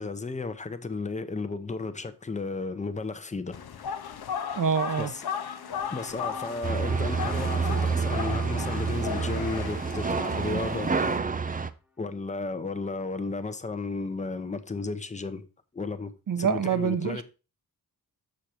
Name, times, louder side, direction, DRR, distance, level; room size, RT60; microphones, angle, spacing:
voice 1, 0.0-3.6 5.0-5.2 5.9-10.9 12.0-15.4 15.7-16.1 16.4-17.2, left 3 dB, 20° left, 0.7 m, -33 dB
sound 1, 3.5-11.2, left 7 dB, 80° left, 0.8 m, -36 dB
voice 2, 4.6-5.1 16.3-17.2, right 7 dB, 60° right, 0.9 m, -26 dB
sound 2, 5.5-11.8, left 2 dB, 5° right, 1.0 m, -48 dB
sound 3, 6.6-11.7, right 5 dB, 25° right, 0.4 m, -28 dB
6.6 x 6.4 x 4.3 m
wide cardioid pair, 140°, 37 cm